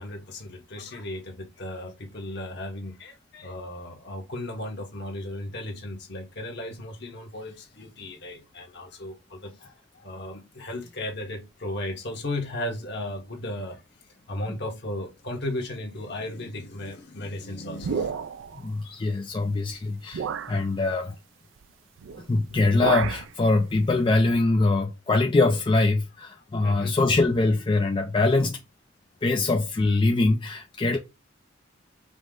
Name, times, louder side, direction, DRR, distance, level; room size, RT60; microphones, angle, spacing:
voice 1, 0.0-13.8 14.3-18.1 26.6-27.0, left 1 dB, 55° left, 1.2 m, -35 dB
sound 1, 17.8-18.6 19.5-19.6 20.1-20.6 22.0-22.2 22.5-23.3, right 6 dB, 70° right, 0.3 m, -30 dB
voice 2, 18.6-21.1 22.3-28.6 29.2-31.0, left 2 dB, 25° left, 0.3 m, -23 dB
5.1 x 2.1 x 3.7 m
head